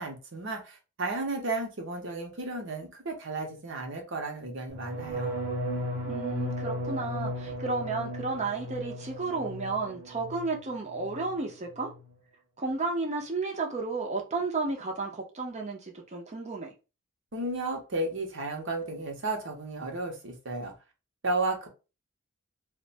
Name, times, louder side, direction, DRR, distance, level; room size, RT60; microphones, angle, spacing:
voice 1, 0.0-5.4 17.3-20.7 21.2-21.7, right 2 dB, 55° right, 0.8 m, -33 dB
sound 1, 4.7-10.6 10.9-11.4 11.7-12.1, equal, 10° right, 0.9 m, -35 dB
voice 2, 6.1-11.9 12.6-16.7, right 3 dB, 30° right, 0.7 m, -32 dB
2.5 x 2.2 x 3.9 m
head